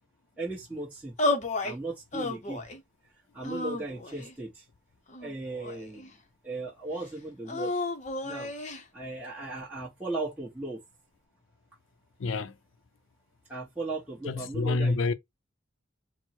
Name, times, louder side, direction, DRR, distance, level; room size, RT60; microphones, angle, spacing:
voice 1, 0.4-1.1 1.6-2.6 3.3-4.6 5.2-6.1 6.4-7.7 8.2-8.5 8.9-10.8 13.5-15.0, right 2 dB, 5° right, 1.0 m, -37 dB
sound 1, 1.2-1.8 2.1-2.8 3.4-4.3 5.1-6.1 7.5-8.8, left 2 dB, 35° left, 0.6 m, -32 dB
voice 2, 12.2-12.5 14.3-15.1, left 3 dB, 75° left, 0.5 m, -27 dB
4.4 x 2.0 x 4.4 m
head